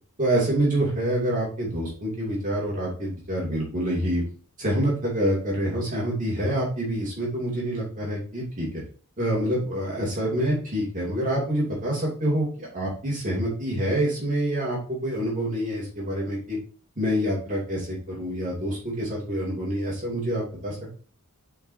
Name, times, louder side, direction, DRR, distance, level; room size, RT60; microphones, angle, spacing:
voice 1, 0.2-4.2 4.6-8.8 9.2-16.6 17.0-20.9, right 1 dB, 35° right, -5 dB, 2.6 m, -26 dB
10.0 x 4.6 x 2.8 m, 0.43 s
head